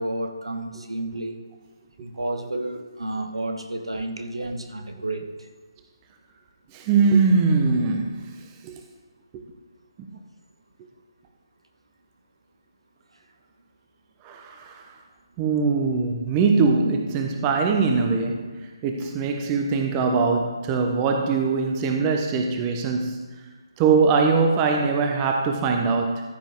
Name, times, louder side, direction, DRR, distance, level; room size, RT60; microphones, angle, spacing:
voice 1, 0.0-1.4 2.0-5.5, right 1 dB, 80° right, 6 dB, 1.3 m, -31 dB
voice 2, 6.7-8.4 8.6-8.8 9.3-9.4 10.0-10.1 14.2-14.8 15.4-18.5 18.8-23.2 23.8-26.2, right 4 dB, 20° right, 3 dB, 0.9 m, -22 dB
14.0 x 7.5 x 3.6 m, 1.4 s
figure-of-eight pair, 145°, 3 cm